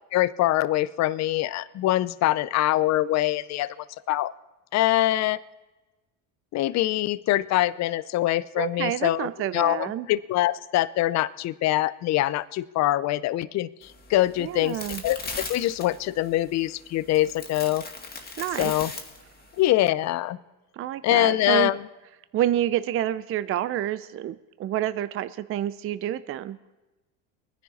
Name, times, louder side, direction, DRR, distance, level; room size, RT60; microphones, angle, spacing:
voice 1, 0.1-3.7 4.1-4.3 4.7-5.4 6.5-15.2 15.5-17.8 18.6-18.9 19.6-20.4 21.0-21.8, left 15 dB, 40° left, 18 dB, 0.6 m, -24 dB
voice 2, 8.6-10.1 14.4-15.0 18.4-18.7 20.7-21.7 22.3-26.6, right 12 dB, 35° right, 14 dB, 0.5 m, -28 dB
sound 1, 13.8-19.7, left 4 dB, 25° left, 2.0 m, -39 dB
23.0 x 10.5 x 4.2 m, 1.1 s
supercardioid pair, 105°, 40 cm